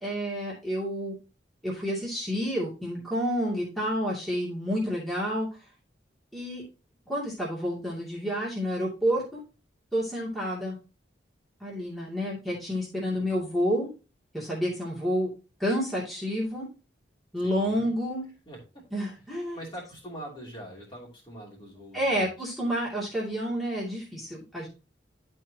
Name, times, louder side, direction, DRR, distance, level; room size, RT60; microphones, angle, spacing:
voice 1, 0.0-1.1 1.6-5.5 6.3-6.6 7.1-9.4 9.9-10.8 11.6-13.9 14.3-15.3 15.6-16.7 17.3-18.2 18.9-19.6 21.9-24.7, equal, ahead, -7 dB, 2.5 m, -29 dB
voice 2, 12.9-13.4 17.4-17.9 18.5-18.6 19.5-22.3, equal, 30° left, -4 dB, 3.0 m, -43 dB
11.5 x 4.6 x 2.9 m, 0.32 s
head